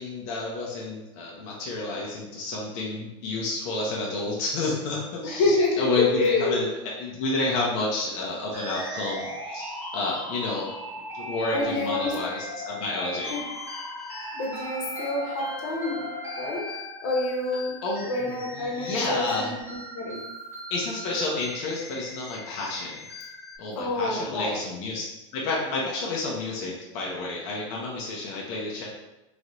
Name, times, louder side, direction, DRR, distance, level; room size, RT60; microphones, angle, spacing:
voice 1, 0.0-6.7 7.0-10.7 11.1-13.3 17.8-19.5 20.7-23.0 23.6-25.1 25.3-28.9, left 2 dB, 55° left, -3 dB, 0.8 m, -30 dB
voice 2, 5.2-6.6 11.5-12.1 13.3-13.4 14.3-16.0 16.4-16.6 17.0-17.7 18.1-19.6 19.9-20.2 23.8-24.6, left 2 dB, 85° left, -2 dB, 1.0 m, -27 dB
sound 1, 8.5-23.6, left 1 dB, 15° right, 1.3 m, -38 dB
3.2 x 2.9 x 2.6 m, 0.97 s
supercardioid pair, 145°, 17 cm